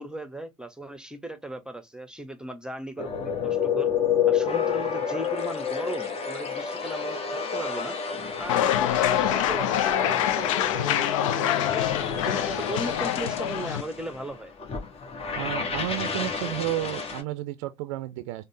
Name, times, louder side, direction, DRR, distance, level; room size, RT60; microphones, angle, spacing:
voice 1, 0.0-3.9 4.3-8.0 8.4-11.8 12.2-14.5, right 1 dB, 5° right, 0.7 m, -37 dB
sound 1, 3.0-17.2, left 7 dB, 35° left, 0.9 m, -30 dB
sound 2, 8.5-13.8, left 11 dB, 70° left, 0.4 m, -25 dB
voice 2, 15.3-18.4, right 16 dB, 65° right, 0.4 m, -32 dB
5.0 x 2.1 x 2.4 m
figure-of-eight pair, 60°, 17 cm